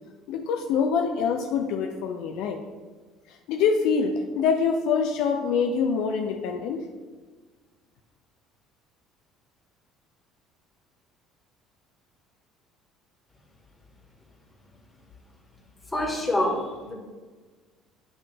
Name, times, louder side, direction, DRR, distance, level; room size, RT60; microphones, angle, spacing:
voice 1, 0.3-2.6 3.3-6.9, left 6 dB, 65° left, 4 dB, 0.4 m, -25 dB
voice 2, 15.9-16.9, left 1 dB, 15° left, -2 dB, 1.7 m, -26 dB
8.6 x 3.3 x 3.4 m, 1.4 s
hypercardioid pair, 60°, 0 cm